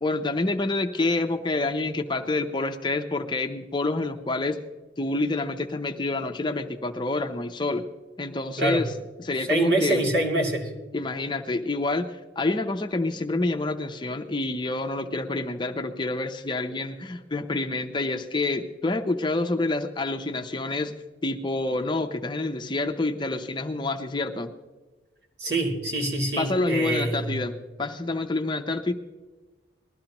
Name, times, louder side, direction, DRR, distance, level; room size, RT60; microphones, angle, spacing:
voice 1, 0.0-4.6 5.0-7.8 8.2-8.9 9.2-10.0 10.9-20.9 21.2-24.5 26.4-28.9, left 2 dB, 25° left, 6 dB, 0.6 m, -27 dB
voice 2, 9.4-10.7 25.4-27.4, right 1 dB, 60° right, 0 dB, 2.6 m, -25 dB
20.0 x 13.0 x 2.9 m, 1.2 s
head